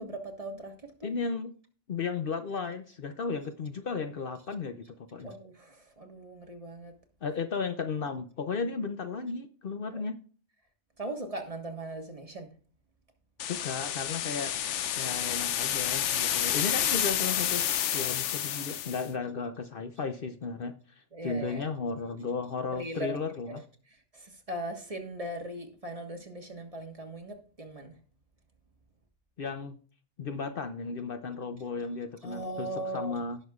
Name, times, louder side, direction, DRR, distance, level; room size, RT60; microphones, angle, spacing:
voice 1, 0.0-1.1 5.2-6.9 9.9-10.0 11.0-12.5 21.1-21.6 22.7-23.2 23.5-28.0 32.2-33.2, right 1 dB, 30° right, 1.5 m, -39 dB
voice 2, 1.0-1.5 1.9-5.3 7.2-10.2 13.4-14.5 14.9-17.7 17.9-23.6 29.4-29.8 30.2-33.4, left 4 dB, 55° left, 0.9 m, -34 dB
sound 1, 13.4-19.1, left 10 dB, 90° left, 1.0 m, -30 dB
17.0 x 6.5 x 2.4 m
omnidirectional pair, 1.2 m